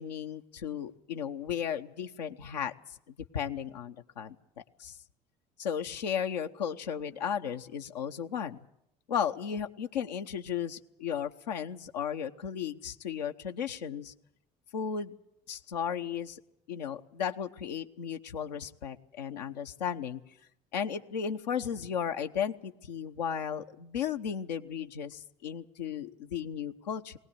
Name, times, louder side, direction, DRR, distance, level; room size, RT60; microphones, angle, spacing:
voice 1, 0.0-3.0 3.3-5.0 5.6-8.6 9.1-14.1 14.7-15.2 15.5-16.4 16.7-20.2 20.7-27.2, left 8 dB, 90° left, 5 dB, 1.0 m, -35 dB
20.5 x 18.0 x 8.6 m, 0.80 s
hypercardioid pair, 65°, 21 cm